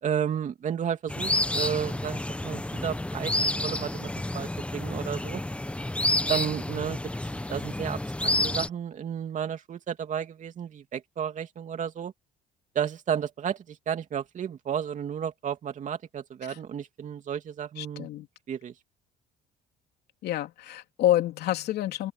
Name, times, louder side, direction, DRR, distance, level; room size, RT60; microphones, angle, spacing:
voice 1, 0.0-5.4 6.1-7.0 7.5-12.1 12.7-18.1 18.5-18.7, right 8 dB, 45° right, 2.8 m, -32 dB
sound 1, 1.1-8.7, left 1 dB, 5° left, 1.2 m, -29 dB
voice 2, 17.8-18.3 20.2-22.1, left 13 dB, 75° left, 3.1 m, -28 dB
open air
cardioid pair, 110°, 17 cm